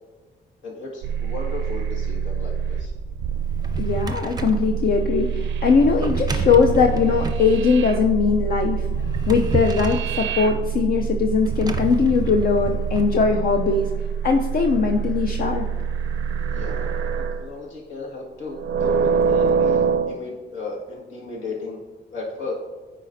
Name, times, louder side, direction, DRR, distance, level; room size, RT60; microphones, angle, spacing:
voice 1, 0.6-2.9 16.5-21.8 22.1-22.5, left 3 dB, 75° left, -3 dB, 1.7 m, -34 dB
sound 1, 1.0-17.5 18.5-20.2, right 6 dB, 70° right, 0.4 m, -25 dB
Drawer open or close, 3.3-4.7 5.8-7.5 8.8-10.1 11.4-13.1, right 3 dB, 20° right, 0.5 m, -30 dB
voice 2, 3.8-8.9 9.3-13.9 14.2-15.7, left 5 dB, 50° left, 4 dB, 0.5 m, -20 dB
9.3 x 4.2 x 2.6 m, 1.3 s
cardioid pair, 90°, 20 cm